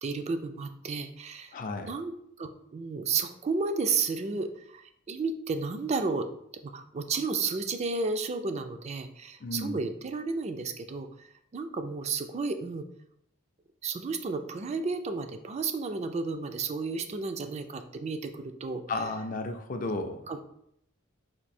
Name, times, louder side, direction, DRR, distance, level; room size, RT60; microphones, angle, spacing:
voice 1, 0.0-1.5 1.9-2.1 2.4-6.3 6.6-11.3 11.5-12.9 13.8-18.8 20.3-20.4, right 4 dB, 35° right, 8 dB, 0.3 m, -32 dB
voice 2, 1.5-1.9 9.4-9.8 18.9-20.2, left 2 dB, 40° left, 6 dB, 0.4 m, -33 dB
4.4 x 2.6 x 4.2 m, 0.74 s
head